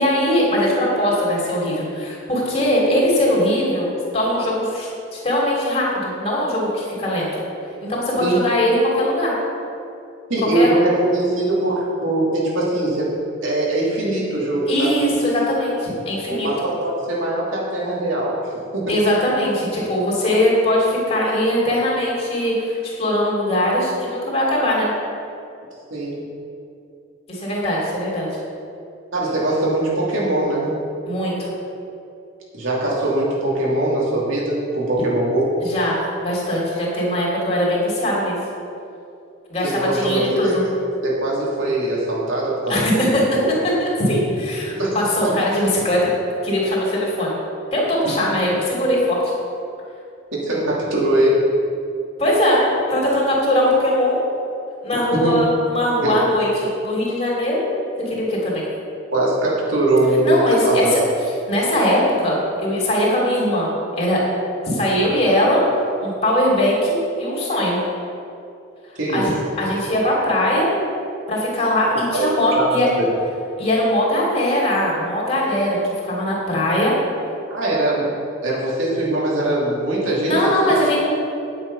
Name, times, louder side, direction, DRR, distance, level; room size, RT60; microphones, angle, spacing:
voice 1, 0.0-7.3 7.8-9.3 10.5-10.7 14.7-16.5 18.9-24.9 27.3-28.3 31.1-31.5 35.6-38.4 39.5-40.6 42.7-43.2 43.8-46.0 46.4-47.4 47.7-49.3 52.2-54.2 54.8-57.6 58.0-58.6 60.2-61.0 61.5-64.2 64.6-65.6 66.0-67.8 69.1-70.7 71.3-72.9 73.6-76.9 80.2-81.0, left 1 dB, 30° left, -4 dB, 2.9 m, -20 dB
voice 2, 10.3-13.1 13.4-14.9 16.3-18.9 25.9-26.2 29.1-30.7 32.5-35.5 39.6-40.6 41.0-42.8 43.1-43.5 44.7-45.0 45.2-45.3 50.3-51.4 55.1-55.3 56.0-56.2 59.1-60.9 69.0-69.3 71.9-73.1 77.5-78.1 78.4-80.7, right 1 dB, 85° right, -5 dB, 2.9 m, -21 dB
9.8 x 8.4 x 5.4 m, 2.7 s
head